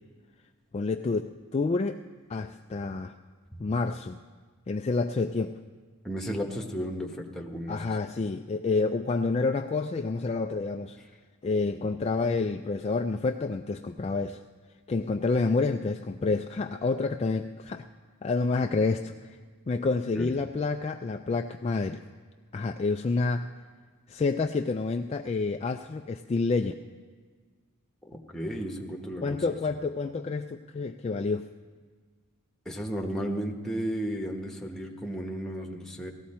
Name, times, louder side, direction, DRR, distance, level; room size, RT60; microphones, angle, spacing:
voice 1, 0.7-2.0 2.3-3.1 3.6-4.2 4.7-5.6 7.7-11.0 11.4-14.4 14.9-17.8 18.2-19.4 19.7-22.0 22.5-23.5 24.1-26.7 29.2-31.5, left 3 dB, 30° left, 5 dB, 0.3 m, -28 dB
voice 2, 6.0-7.8 11.8-11.9 20.1-20.3 28.0-29.6 32.6-36.1, equal, ahead, 1 dB, 1.1 m, -34 dB
18.5 x 14.0 x 4.3 m, 1.5 s
head